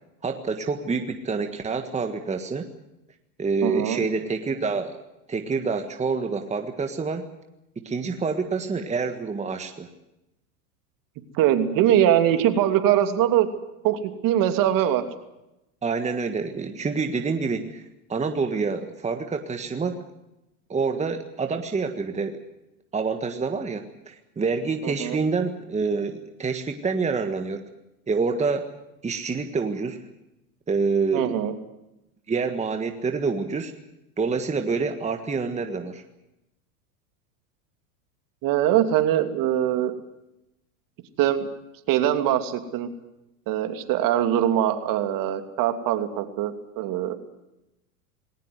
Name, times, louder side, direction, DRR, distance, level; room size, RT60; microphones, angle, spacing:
voice 1, 0.2-2.7 3.4-5.0 5.3-7.2 7.8-9.9 15.8-17.8 18.1-20.0 20.7-22.4 22.9-27.7 28.1-28.7 29.0-30.0 30.7-31.4 32.3-33.7 34.2-36.0, right 4 dB, 15° right, 6 dB, 1.7 m, -27 dB
voice 2, 3.6-4.0 11.3-13.5 13.8-15.0 24.8-25.2 31.1-31.5 38.4-39.9 41.2-41.5 41.9-42.9 43.5-47.2, right 11 dB, 50° right, 8 dB, 2.9 m, -22 dB
20.0 x 18.5 x 9.6 m, 0.92 s
supercardioid pair, 115°, 44 cm